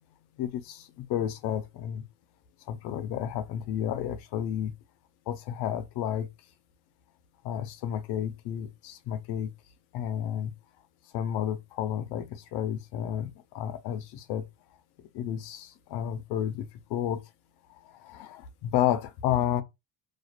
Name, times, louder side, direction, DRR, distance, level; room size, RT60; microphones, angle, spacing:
voice 1, 0.4-2.0 2.7-4.7 5.3-6.3 7.4-9.5 9.9-10.5 11.1-14.4 15.1-17.2 18.0-19.6, left 10 dB, 60° left, 0.6 m, -31 dB
2.4 x 2.4 x 2.2 m
cardioid pair, 110°, 46 cm